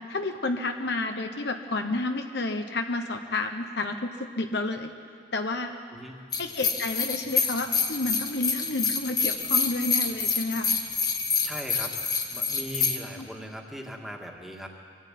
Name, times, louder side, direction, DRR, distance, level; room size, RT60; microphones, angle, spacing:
voice 1, 0.1-4.9 5.3-5.7 6.4-10.7 13.2-13.3, left 2 dB, 65° left, 5 dB, 1.0 m, -30 dB
voice 2, 5.9-6.2 11.4-11.9 12.3-14.7, equal, ahead, 1 dB, 1.9 m, -39 dB
sound 1, 6.3-13.0, left 5 dB, 20° left, 1.2 m, -27 dB
24.5 x 14.5 x 9.2 m, 2.3 s
head